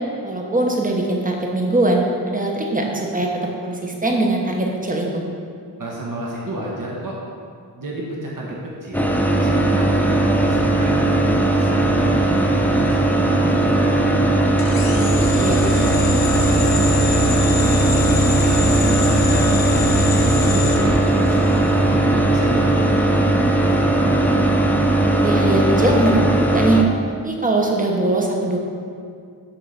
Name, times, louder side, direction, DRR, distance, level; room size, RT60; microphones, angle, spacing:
voice 1, 0.2-5.3 15.1-15.6 25.1-26.8 27.1-28.6, right 2 dB, 20° right, 0 dB, 1.1 m, -21 dB
voice 2, 5.8-7.1 7.8-11.1 11.5-14.3 14.8-15.3 15.6-19.6 20.3-24.2, right 1 dB, 45° right, -4 dB, 1.3 m, -30 dB
sound 1, 8.9-26.8, right 2 dB, 5° left, 0.6 m, -18 dB
sound 2, 14.6-21.7, left 2 dB, 55° left, 0.8 m, -25 dB
6.8 x 3.8 x 5.7 m, 2.3 s
cardioid pair, 55°, 44 cm